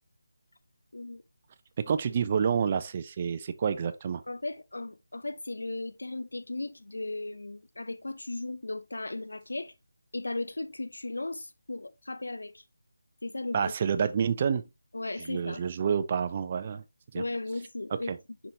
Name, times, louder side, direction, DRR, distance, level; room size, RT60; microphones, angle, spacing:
voice 1, 1.8-4.2 13.5-14.6 15.2-16.8 17.1-17.2 18.1-18.2, right 7 dB, 25° right, 0.6 m, -28 dB
voice 2, 4.3-9.7 10.1-12.6 13.2-13.7 14.9-15.6 17.1-18.1, left 2 dB, 65° left, 1.0 m, -36 dB
10.5 x 3.7 x 2.9 m
figure-of-eight pair, 160°, 0 cm